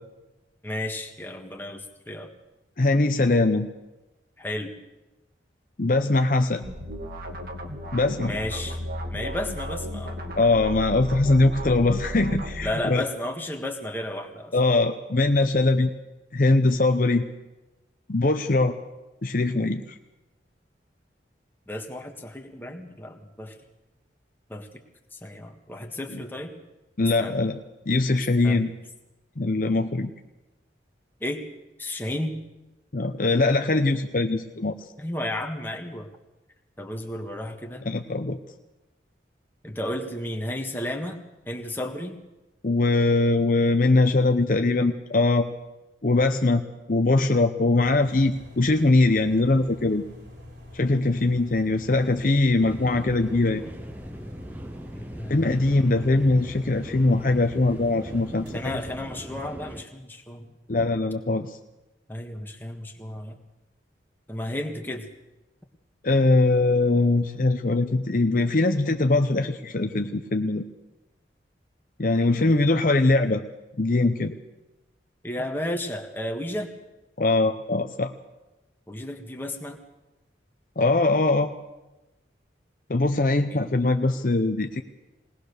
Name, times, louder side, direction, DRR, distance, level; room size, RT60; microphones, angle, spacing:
voice 1, 0.6-2.3 4.4-4.7 8.2-8.8 9.1-10.1 12.6-14.5 21.7-23.5 24.5-24.7 25.1-26.6 27.0-27.3 28.4-28.7 31.2-31.5 31.8-32.4 35.0-36.1 36.8-37.9 39.6-41.2 41.5-42.2 54.9-55.5 58.5-60.6 62.1-63.4 64.3-65.1 72.2-72.3 75.2-76.7 78.9-79.8 83.5-83.6, left 1 dB, 10° left, 2 dB, 1.6 m, -33 dB
voice 2, 2.8-3.7 5.8-6.6 7.9-8.3 10.4-13.0 14.5-15.9 16.3-17.2 18.1-18.8 19.2-20.0 26.1-26.2 27.0-27.6 27.9-28.7 29.4-30.1 32.9-34.7 37.9-38.4 42.6-45.5 46.0-46.6 46.9-50.0 50.7-53.7 55.3-58.8 60.7-61.6 66.0-70.6 72.0-73.4 73.8-74.4 77.2-78.1 80.8-81.5 82.9-84.8, left 2 dB, 45° left, 6 dB, 0.8 m, -22 dB
sound 1, 6.6-12.7, equal, 55° right, 2.0 m, -34 dB
sound 2, 47.8-58.9, left 1 dB, 75° right, 4.7 m, -45 dB
sound 3, 52.6-59.8, equal, 10° right, 0.6 m, -40 dB
20.5 x 19.0 x 6.7 m, 1.0 s
head